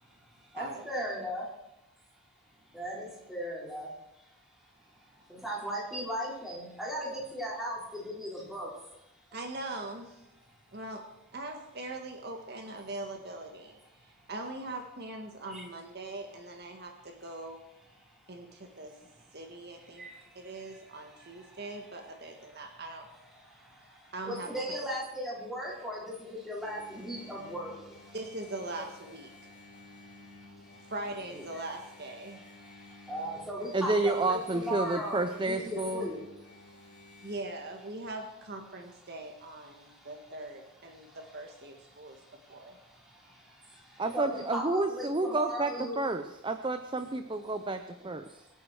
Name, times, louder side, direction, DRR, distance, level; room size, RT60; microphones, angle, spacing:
voice 1, 0.3-1.5 2.7-3.9 4.2-4.4 5.0-8.9 14.2-14.3 15.5-15.6 18.2-18.3 19.9-20.8 21.1-21.6 22.5-22.6 23.3-28.2 29.3-30.9 31.3-31.4 32.3-36.2 36.5-37.3 39.7-40.1 40.9-41.2 41.9-46.0 47.5-47.6 48.0-48.5, equal, ahead, -6 dB, 5.4 m, -39 dB
voice 2, 9.3-10.2 10.7-11.0 11.3-17.6 18.3-18.9 19.3-20.1 20.4-23.1 24.1-24.8 28.1-29.5 30.9-32.4 37.2-42.2 42.5-42.8, right 2 dB, 50° right, 3 dB, 1.7 m, -41 dB
Engine, 26.6-37.4, left 2 dB, 55° left, 3.1 m, -53 dB
voice 3, 33.7-36.1 44.0-48.2, right 2 dB, 20° right, 8 dB, 0.6 m, -30 dB
24.0 x 9.0 x 4.8 m, 0.87 s
head